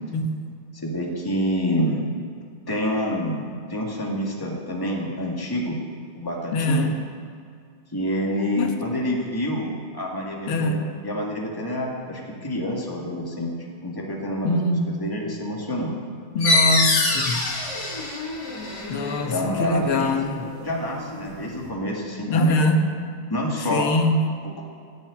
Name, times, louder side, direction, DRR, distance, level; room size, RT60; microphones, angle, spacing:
voice 1, 0.7-2.0 2.7-5.8 6.1-6.9 7.9-13.5 13.8-15.9 19.3-20.2 20.6-22.6 23.3-23.9 24.4-24.6, equal, 10° left, -2 dB, 1.9 m, -27 dB
voice 2, 6.5-7.0 8.6-8.7 10.5-10.8 14.4-15.0 16.4-17.5 18.9-20.5 22.3-22.8 23.7-24.3, left 1 dB, 85° left, 4 dB, 2.0 m, -22 dB
sound 1, 16.4-21.7, left 2 dB, 55° left, 2.7 m, -26 dB
16.5 x 7.7 x 8.6 m, 2.2 s
omnidirectional pair, 2.3 m